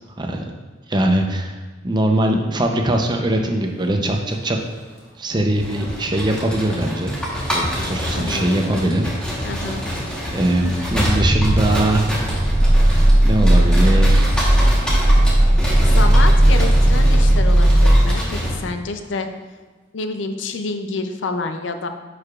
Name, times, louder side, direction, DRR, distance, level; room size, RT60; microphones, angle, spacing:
voice 1, 0.2-0.5 0.9-4.6 5.2-7.2 7.5-9.0 10.3-12.1 13.2-14.3, right 1 dB, 25° right, 3 dB, 0.6 m, -21 dB
Motor vehicle (road), 3.7-4.0 4.3-18.8 19.1-19.6, right 1 dB, 50° left, 2.0 m, -29 dB
sound 1, 5.6-18.6, equal, 5° left, 1.1 m, -27 dB
voice 2, 8.1-8.6 9.4-9.8 15.8-19.3 19.9-21.9, left 3 dB, 75° left, 7 dB, 0.5 m, -28 dB
Growling, 12.3-18.2, right 1 dB, 85° right, 1.6 m, -14 dB
9.7 x 4.8 x 2.4 m, 1.3 s
head